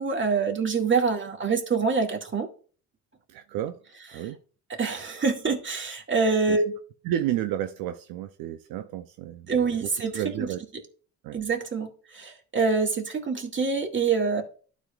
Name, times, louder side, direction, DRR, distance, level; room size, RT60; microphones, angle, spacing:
voice 1, 0.0-2.5 4.8-6.7 9.5-10.5 11.3-14.4, right 4 dB, 35° right, 3 dB, 2.0 m, -25 dB
voice 2, 3.3-3.8 4.1-4.4 6.5-6.6 7.0-10.6 11.2-11.4, right 12 dB, 75° right, 9 dB, 0.6 m, -32 dB
12.0 x 5.2 x 2.4 m, 0.41 s
supercardioid pair, 65°, 35 cm